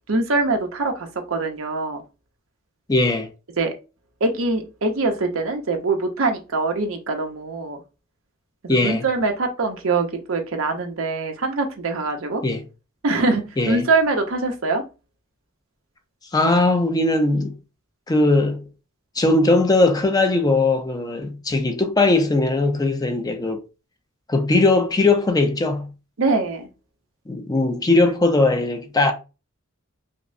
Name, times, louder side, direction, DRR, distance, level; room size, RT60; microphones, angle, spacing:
voice 1, 0.1-2.0 3.6-3.7 4.2-7.8 8.6-12.4 13.0-14.8 26.2-26.7, right 3 dB, 85° right, 0.8 m, -23 dB
voice 2, 2.9-3.3 8.7-9.0 12.4-12.6 13.6-13.8 16.3-17.5 18.1-18.6 19.2-23.6 24.3-25.9 27.3-29.1, left 2 dB, 20° left, 0.5 m, -19 dB
5.2 x 2.1 x 2.6 m
head